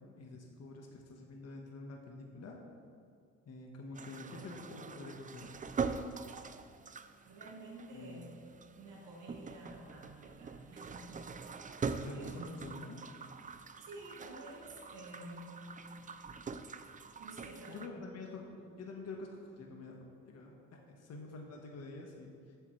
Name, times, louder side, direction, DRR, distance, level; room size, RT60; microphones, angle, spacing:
voice 1, 0.0-2.5 3.4-5.6 7.9-8.2 12.0-13.0 17.7-22.6, left 3 dB, 55° left, 0 dB, 1.5 m, -47 dB
sound 1, 3.9-17.9, right 5 dB, 25° right, 0.5 m, -43 dB
voice 2, 7.2-8.4 8.8-11.7 12.1-12.5 13.8-15.8 17.2-18.0, right 1 dB, 80° right, -3 dB, 2.4 m, -50 dB
14.0 x 8.3 x 3.3 m, 2.3 s
cardioid pair, 90°, 30 cm